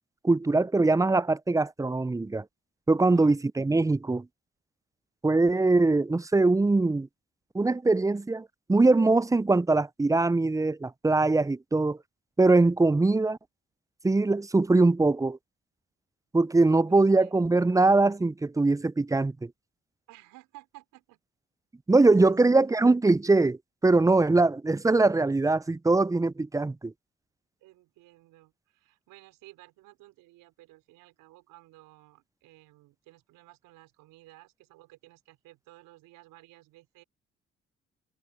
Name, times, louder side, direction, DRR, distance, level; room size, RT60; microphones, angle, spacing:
voice 1, 0.2-2.4 2.9-4.3 5.2-7.1 7.5-12.0 12.4-13.4 14.0-15.4 16.3-19.5 21.9-26.9, right 3 dB, 10° right, 0.5 m, -22 dB
voice 2, 3.0-3.3 16.7-17.4 20.1-21.2 22.0-22.3 27.6-37.0, right 18 dB, 80° right, 5.0 m, -54 dB
hypercardioid pair, 45°, 32 cm